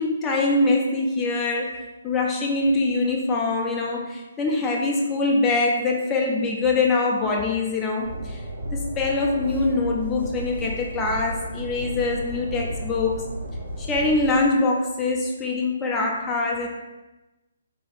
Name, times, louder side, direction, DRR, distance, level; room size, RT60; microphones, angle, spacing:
voice 1, 0.0-8.4 8.7-13.3 13.8-16.7, left 3 dB, 15° left, -1 dB, 0.5 m, -23 dB
Train, 8.0-14.3, equal, 75° right, 0.8 m, -33 dB
2.8 x 2.4 x 4.0 m, 1.1 s
figure-of-eight pair, 135°, 0 cm